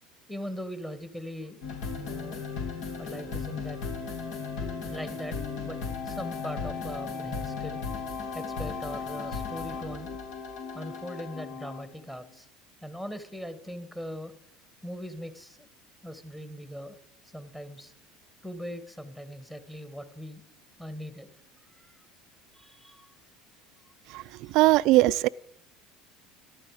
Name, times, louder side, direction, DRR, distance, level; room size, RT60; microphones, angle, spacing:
voice 1, 0.3-1.6 2.0-2.5 3.0-3.8 4.8-5.4 5.6-5.8 6.0-7.8 8.3-10.2 10.7-12.5 12.8-14.3 14.8-15.7 16.0-17.0 17.3-17.9 18.4-20.4 20.8-21.3 21.8-22.0 22.5-23.1 24.4-24.5, equal, 5° left, 1.6 m, -40 dB
sound 1, 1.6-12.0, left 5 dB, 70° left, 2.9 m, -36 dB
voice 2, 24.1-25.3, right 18 dB, 65° right, 0.4 m, -21 dB
13.5 x 12.0 x 4.9 m
supercardioid pair, 90°, 0 cm